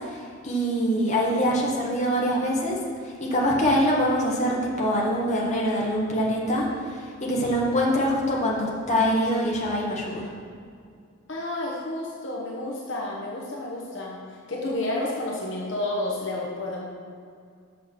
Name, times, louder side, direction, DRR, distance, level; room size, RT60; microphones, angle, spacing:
voice 1, 0.4-2.8 3.3-10.2, equal, 35° left, -4 dB, 1.5 m, -24 dB
voice 2, 11.3-16.8, left 1 dB, 60° left, -3 dB, 1.2 m, -31 dB
6.7 x 6.4 x 6.3 m, 2.2 s
head